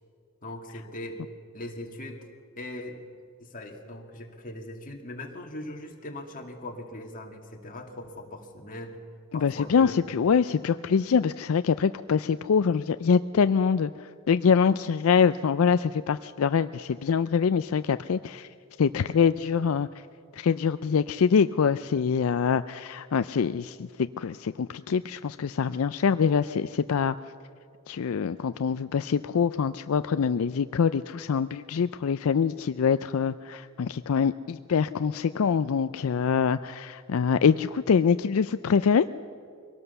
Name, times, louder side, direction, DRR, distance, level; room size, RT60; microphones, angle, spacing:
voice 1, 0.4-1.2 1.5-2.2 2.6-3.0 3.4-9.0 9.3-10.0, left 1 dB, 40° left, 2 dB, 2.3 m, -40 dB
voice 2, 9.3-18.5 18.8-19.9 20.3-27.1 27.9-39.1, left 6 dB, 75° left, 12 dB, 0.4 m, -24 dB
23.5 x 18.0 x 6.9 m, 2.3 s
head